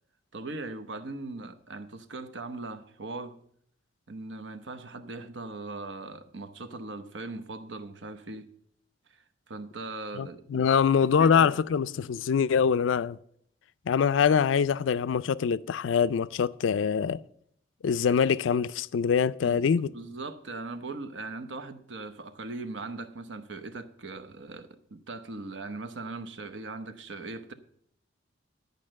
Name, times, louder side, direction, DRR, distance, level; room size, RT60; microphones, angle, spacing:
voice 1, 0.3-3.4 4.1-8.5 9.1-10.6 11.0-11.5 19.4-27.5, right 3 dB, 75° right, 0.9 m, -40 dB
voice 2, 10.2-13.2 13.9-17.2 17.8-19.9, left 7 dB, 85° left, 0.4 m, -24 dB
11.0 x 5.3 x 7.6 m
head